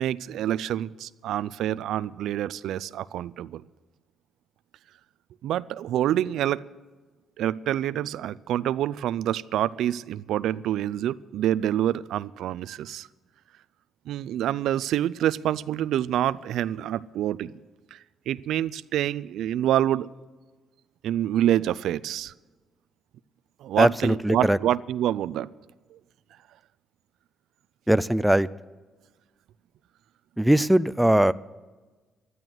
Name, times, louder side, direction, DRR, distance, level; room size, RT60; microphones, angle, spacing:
voice 1, 0.0-3.6 5.4-6.6 7.4-13.1 14.1-17.5 17.9-18.0 18.3-20.1 21.0-22.3 23.6-25.5 25.9-26.0, right 12 dB, 80° right, 16 dB, 0.4 m, -27 dB
voice 2, 23.8-24.6 27.9-28.5 30.4-31.3, right 1 dB, 5° right, 15 dB, 0.4 m, -20 dB
12.5 x 10.5 x 7.8 m, 1.3 s
cardioid pair, 90°, 0 cm